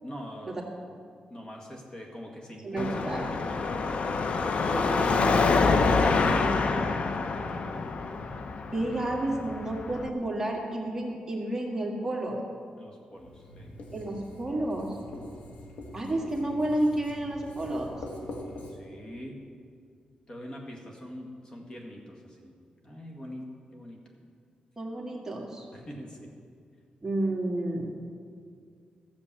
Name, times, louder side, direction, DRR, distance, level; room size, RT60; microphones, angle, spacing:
voice 1, 0.0-0.8 1.3-3.9 6.6-7.9 12.8-13.8 18.7-19.4 20.3-24.1 25.7-26.3, equal, 30° left, 0 dB, 1.9 m, -43 dB
voice 2, 2.6-3.2 4.7-5.7 8.7-12.4 13.9-14.9 15.9-18.0 24.8-25.7 27.0-27.9, right 1 dB, 20° right, -2 dB, 1.9 m, -31 dB
Car passing by / Traffic noise roadway noise / Engine, 2.8-10.1, left 4 dB, 55° left, 0.7 m, -26 dB
Writing, 13.1-18.7, left 1 dB, 85° left, 2.0 m, -44 dB
14.0 x 7.1 x 7.6 m, 2.2 s
wide cardioid pair, 120°, 3 cm